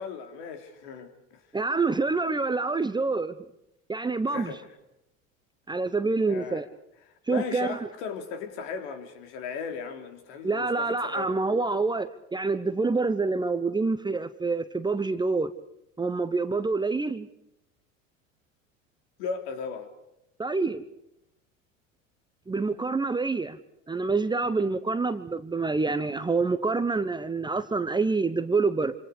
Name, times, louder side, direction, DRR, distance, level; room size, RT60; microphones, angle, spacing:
voice 1, 0.0-1.4 4.3-4.6 6.3-6.6 7.1-11.4 19.2-19.9, left 5 dB, 60° left, 6 dB, 3.6 m, -37 dB
voice 2, 1.5-3.3 3.9-4.6 5.7-6.7 7.3-7.8 10.4-15.5 16.0-17.3 20.4-20.8 22.5-23.6 23.9-28.9, right 3 dB, 10° right, 11 dB, 1.0 m, -27 dB
26.5 x 26.5 x 4.9 m, 0.82 s
figure-of-eight pair, 75°, 38 cm